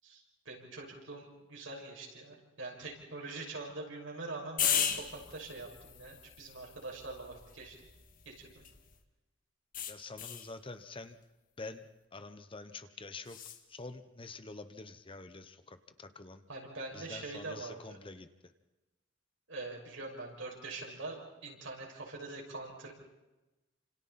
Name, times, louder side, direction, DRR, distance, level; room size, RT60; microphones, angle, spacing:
voice 1, 0.0-7.7 8.2-8.3 10.0-10.1 16.5-18.0 19.5-22.9, right 3 dB, 85° right, -1 dB, 6.5 m, -44 dB
sound 1, 4.6-9.0 9.7-10.5 13.3-13.6, left 8 dB, 45° left, 1.8 m, -37 dB
voice 2, 9.9-11.2 11.6-11.8 12.1-13.4 13.7-16.4 16.9-18.3, left 3 dB, 30° left, 10 dB, 1.0 m, -46 dB
29.0 x 27.0 x 4.3 m, 1.1 s
head